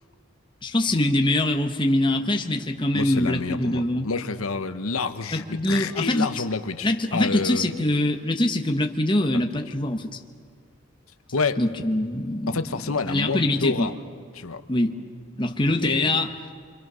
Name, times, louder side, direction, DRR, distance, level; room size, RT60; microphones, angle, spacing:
voice 1, 0.6-4.1 5.3-6.3 6.8-10.2 11.6-12.6 13.1-13.9 14.7-15.0 15.4-16.3, left 1 dB, 20° left, 4 dB, 1.1 m, -23 dB
voice 2, 2.9-7.9 9.3-9.5 11.3-11.6 12.5-13.9 14.3-14.6 15.7-16.2, left 4 dB, 90° left, 9 dB, 1.0 m, -28 dB
26.5 x 25.0 x 6.3 m, 2.2 s
head